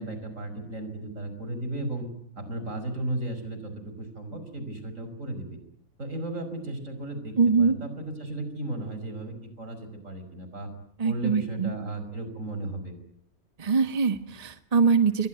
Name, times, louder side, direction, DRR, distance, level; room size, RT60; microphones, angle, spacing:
voice 1, 0.0-2.1 2.4-5.6 6.0-10.7 11.0-12.9, right 1 dB, 65° right, 9 dB, 5.8 m, -35 dB
voice 2, 7.4-7.8 11.0-11.7 13.6-15.3, right 5 dB, 30° right, 8 dB, 1.3 m, -23 dB
28.0 x 22.5 x 9.4 m, 0.71 s
omnidirectional pair, 1.4 m